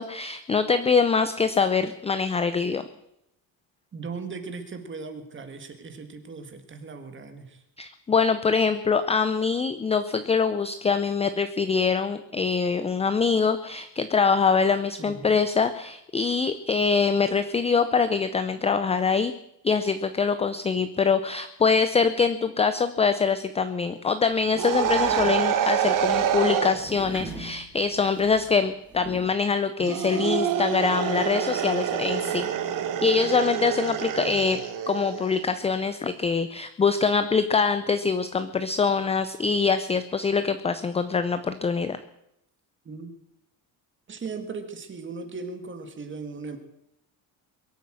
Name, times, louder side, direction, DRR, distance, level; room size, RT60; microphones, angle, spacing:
voice 1, 0.0-2.8 7.8-19.3 19.6-32.5 33.0-34.6 34.9-42.0, left 5 dB, 15° left, 12 dB, 0.5 m, -24 dB
voice 2, 3.9-7.6 15.0-15.4 42.8-43.1 44.1-46.6, right 4 dB, 25° right, 7 dB, 2.0 m, -38 dB
sound 1, 24.3-29.3, right 1 dB, 5° right, 3.2 m, -43 dB
sound 2, 24.6-26.8 29.8-35.4, right 9 dB, 50° right, 1.4 m, -26 dB
22.5 x 8.4 x 7.6 m, 0.81 s
cardioid pair, 145°, 43 cm